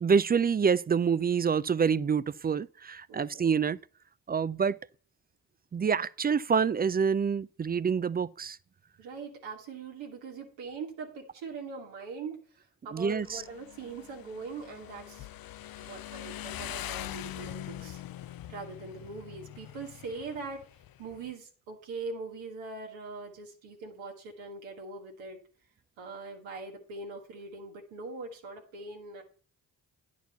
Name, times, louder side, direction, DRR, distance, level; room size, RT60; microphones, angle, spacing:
voice 1, 0.0-3.8 4.3-4.8 5.7-8.6 12.9-13.4, right 6 dB, 25° right, 0.4 m, -27 dB
voice 2, 3.1-3.5 9.0-15.3 15.8-18.0 18.5-20.6 21.0-25.4 26.0-29.2, right 4 dB, 85° right, 1.9 m, -42 dB
Motorcycle, 13.1-21.3, left 13 dB, 55° left, 0.5 m, -43 dB
10.0 x 4.7 x 7.0 m
hypercardioid pair, 40°, 45 cm